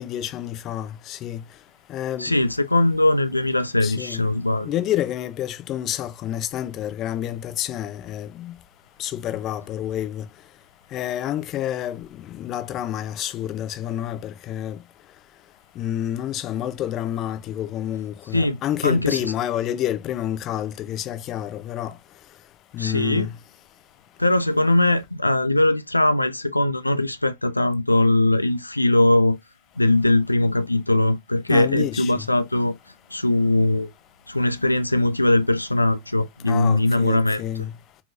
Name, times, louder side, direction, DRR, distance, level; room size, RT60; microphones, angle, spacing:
voice 1, 0.0-1.4 1.9-2.3 3.8-4.3 4.6-8.5 9.0-10.2 10.9-14.8 15.8-21.9 22.7-23.4 31.5-32.3 36.5-37.7, left 11 dB, 35° left, 0.8 m, -29 dB
voice 2, 2.2-4.7 18.3-18.6 18.8-19.2 22.8-23.3 24.2-29.4 29.8-32.7 33.1-33.9 34.3-37.4, left 2 dB, 85° left, 0.4 m, -20 dB
4.5 x 4.2 x 2.5 m
figure-of-eight pair, 90°, 0 cm